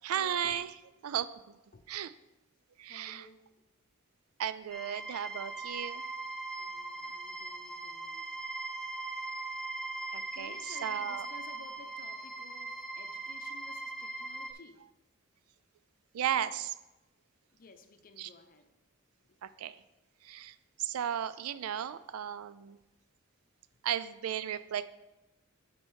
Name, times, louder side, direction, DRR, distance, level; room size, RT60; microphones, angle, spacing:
voice 1, 0.0-0.7 1.0-1.6 1.9-2.1 2.8-3.3 4.4-6.0 10.1-11.3 16.1-16.7 18.2-18.3 19.4-19.8 20.2-22.8 23.8-24.9, right 9 dB, 85° right, 15 dB, 0.4 m, -35 dB
voice 2, 2.9-3.5 6.6-8.3 10.3-14.9 17.5-18.7 19.2-19.4, left 3 dB, 45° left, 7 dB, 0.6 m, -55 dB
sound 1, 4.7-14.5, right 2 dB, 5° left, 0.3 m, -40 dB
7.4 x 4.4 x 4.7 m, 1.0 s
head